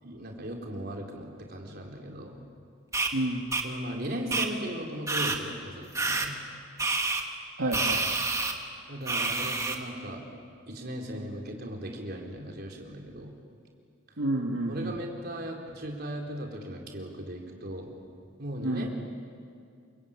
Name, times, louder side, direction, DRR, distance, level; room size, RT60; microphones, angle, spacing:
voice 1, 0.0-2.4 3.6-6.3 8.9-10.2 10.7-13.3 14.7-17.9 18.4-18.9, equal, 50° right, 1 dB, 4.1 m, -37 dB
sound 1, 2.9-3.1 3.5-3.6 4.3-4.5 5.1-5.4 6.0-6.3 6.8-7.2 7.7-8.5 9.1-9.8, right 3 dB, 15° right, 1.7 m, -28 dB
voice 2, 3.1-3.5 7.6-8.2 14.2-15.0 18.6-18.9, right 1 dB, 85° right, -1 dB, 1.9 m, -30 dB
28.5 x 23.0 x 9.0 m, 2.3 s
head